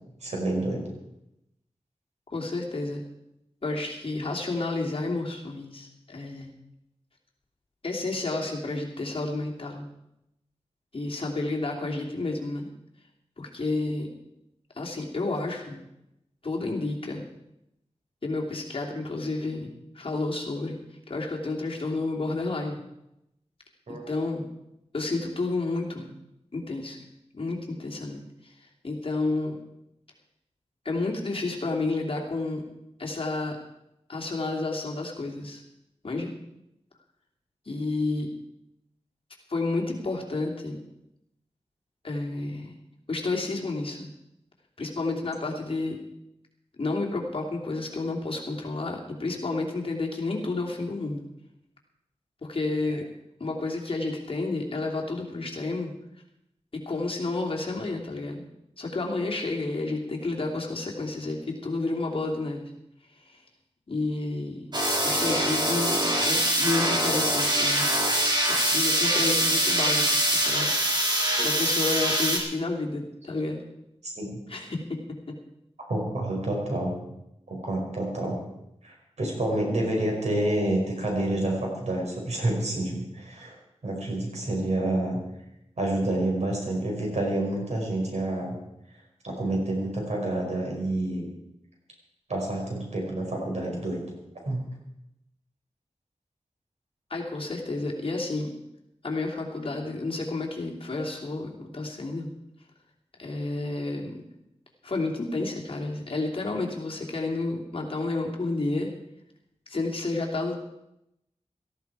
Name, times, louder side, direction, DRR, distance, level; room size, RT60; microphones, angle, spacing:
voice 1, 0.2-0.9 23.9-24.1 74.0-74.4 75.9-76.9 77.5-78.4 78.8-83.6 83.8-85.2 85.8-88.6 89.2-91.3 92.3-94.0 94.4-94.6, right 1 dB, 75° right, -1 dB, 5.2 m, -28 dB
voice 2, 2.3-3.0 3.6-6.5 7.8-9.9 10.9-12.7 13.4-14.1 14.7-15.8 16.4-17.3 18.2-20.8 21.1-22.8 24.1-24.5 24.9-26.2 26.5-27.0 27.3-29.6 30.8-32.6 33.0-33.6 34.1-35.6 36.0-36.3 37.7-38.3 39.5-40.8 42.0-42.8 43.1-44.1 44.8-46.0 46.7-51.2 52.4-53.0 53.4-55.9 56.7-58.4 58.8-62.7 63.2-63.4 63.9-64.7 65.0-66.0 66.2-68.2 68.5-70.7 71.4-73.6 74.5-75.0 75.3-75.4 97.1-98.5 99.0-102.3 103.2-104.2 104.8-108.9 109.7-110.6, left 2 dB, 50° left, -1 dB, 2.8 m, -30 dB
sound 1, 64.7-72.4, right 1 dB, 40° right, 3.6 m, -24 dB
17.5 x 14.5 x 4.8 m, 0.85 s
wide cardioid pair, 100°, 12 cm